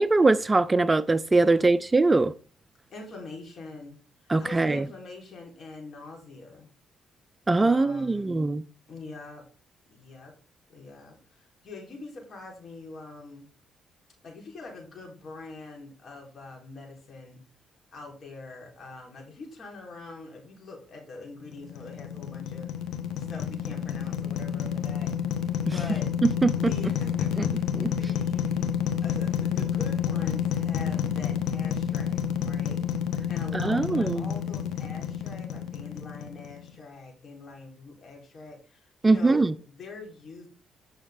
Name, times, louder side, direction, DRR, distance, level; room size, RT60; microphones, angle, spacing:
voice 1, 0.0-2.3 4.3-4.9 7.5-8.6 26.2-26.7 27.7-27.9 33.5-34.3 39.0-39.5, right 3 dB, 20° right, 0.4 m, -22 dB
voice 2, 2.9-6.7 7.6-8.4 8.9-9.4 9.9-10.3 10.7-13.5 14.2-17.4 17.9-22.7 23.2-25.1 25.7-26.1 26.5-28.7 29.0-40.5, left 3 dB, 50° left, 4.1 m, -44 dB
sound 1, 21.5-36.7, left 9 dB, 85° left, 1.3 m, -29 dB
9.4 x 6.3 x 3.8 m
cardioid pair, 90°, 0 cm